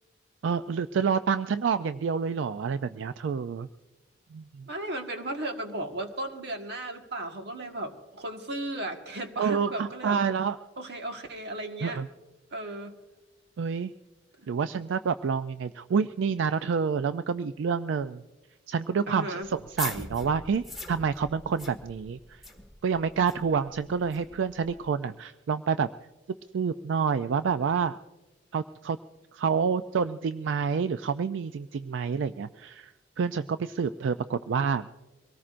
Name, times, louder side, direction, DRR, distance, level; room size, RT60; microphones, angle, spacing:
voice 1, 0.4-3.7 4.3-4.7 9.4-10.6 11.8-12.1 13.6-13.9 14.5-18.2 18.7-22.4 22.8-25.9 26.5-28.0 28.5-29.0 29.3-34.9, right 6 dB, 90° right, 11 dB, 0.4 m, -28 dB
voice 2, 4.7-10.2 10.8-12.0 12.5-13.0 14.4-14.5 19.1-19.5, right 1 dB, 65° right, 4 dB, 1.5 m, -35 dB
sound 1, 19.4-24.8, left 2 dB, ahead, 1.6 m, -42 dB
24.0 x 18.0 x 2.5 m, 1.1 s
head